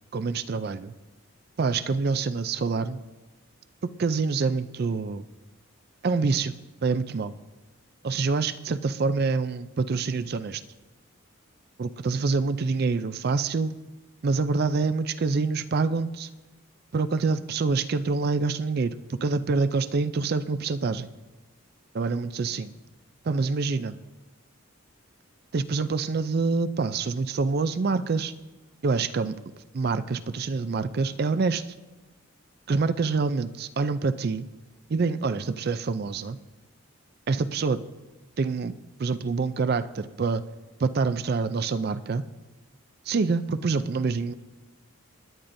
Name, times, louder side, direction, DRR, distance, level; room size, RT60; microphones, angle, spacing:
voice 1, 0.1-0.9 1.6-3.0 4.0-5.2 6.0-6.5 6.8-7.3 8.0-10.6 11.8-13.7 14.2-16.3 16.9-21.1 21.9-22.7 23.2-23.9 25.5-28.3 28.8-29.4 29.7-31.7 32.7-34.5 34.9-36.4 37.3-37.8 38.4-38.7 39.0-40.4 40.8-42.2 43.1-44.3, right 4 dB, 45° right, 13 dB, 0.4 m, -26 dB
19.5 x 10.0 x 2.6 m, 1.2 s
head